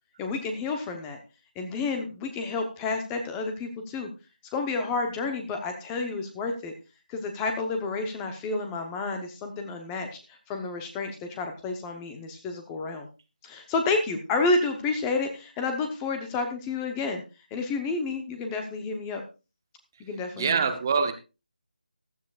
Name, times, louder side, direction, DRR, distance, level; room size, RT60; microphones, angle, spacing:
voice 1, 0.2-1.2 1.6-4.1 4.5-6.7 7.1-10.1 10.5-13.1 13.4-17.2 17.5-19.2 20.0-20.8, left 3 dB, 10° left, 5 dB, 0.8 m, -30 dB
voice 2, 20.4-21.1, right 5 dB, 20° right, 8 dB, 0.7 m, -24 dB
15.0 x 12.5 x 2.4 m, 0.30 s
figure-of-eight pair, 170°, 5 cm